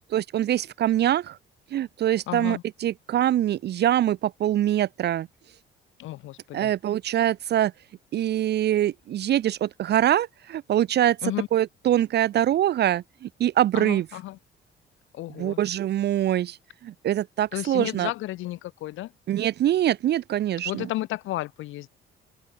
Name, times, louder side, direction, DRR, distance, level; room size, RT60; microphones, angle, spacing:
voice 1, 0.1-1.4 1.7-5.3 6.5-7.7 8.1-14.1 15.4-16.6 16.8-18.1 19.3-20.9, right 12 dB, 60° right, 0.7 m, -24 dB
voice 2, 2.3-2.6 6.0-6.7 11.2-11.5 13.7-14.4 15.1-15.6 17.5-19.1 20.6-21.9, left 16 dB, 85° left, 2.8 m, -33 dB
open air
cardioid pair, 100°, 20 cm